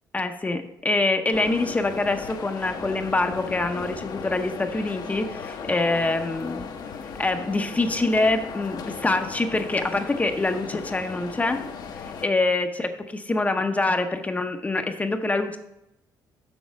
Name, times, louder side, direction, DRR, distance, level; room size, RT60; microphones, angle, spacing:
voice 1, 0.1-6.7 7.2-11.6 12.2-12.9 13.3-15.6, left 2 dB, 20° left, 7 dB, 0.7 m, -25 dB
sound 1, 1.3-12.3, left 5 dB, 55° left, 0.9 m, -36 dB
6.8 x 6.3 x 5.1 m, 0.85 s
cardioid pair, 110°, 8 cm